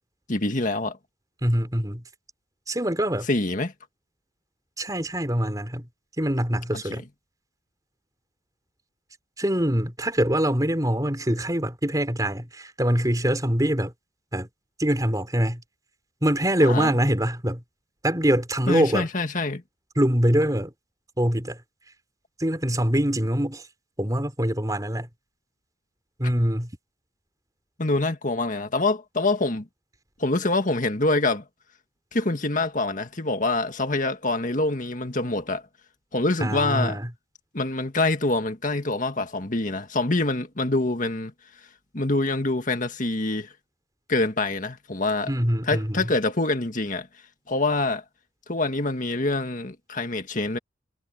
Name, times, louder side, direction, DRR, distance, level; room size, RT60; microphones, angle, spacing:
voice 1, 0.3-1.0 3.3-3.7 6.9-7.0 16.6-17.0 18.7-19.6 27.8-29.7 30.2-31.4 32.1-35.6 36.1-37.0 37.5-41.3 41.9-43.5 44.1-45.3 45.7-47.1 47.5-48.0 48.5-50.6, left 2 dB, 45° left, 1.9 m, -25 dB
voice 2, 1.4-2.0 2.7-3.3 4.8-5.9 6.2-7.0 9.4-13.9 14.3-14.5 14.8-15.6 16.2-17.6 18.0-19.1 20.0-20.7 21.2-21.6 22.4-23.6 24.0-25.1 26.2-26.7 36.4-37.1 45.3-46.1, equal, 20° right, 4.6 m, -24 dB
head